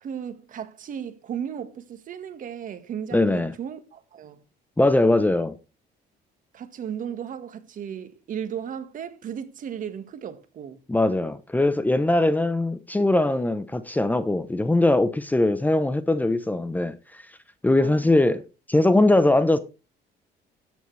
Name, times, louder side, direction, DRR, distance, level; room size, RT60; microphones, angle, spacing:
voice 1, 0.0-4.4 6.5-10.8 13.3-13.4 17.8-18.1, right 8 dB, 50° right, 1.7 m, -35 dB
voice 2, 3.1-3.5 4.8-5.6 10.9-17.2 17.6-19.6, left 2 dB, 10° left, 0.9 m, -21 dB
12.5 x 9.3 x 3.3 m
cardioid pair, 110°, 17 cm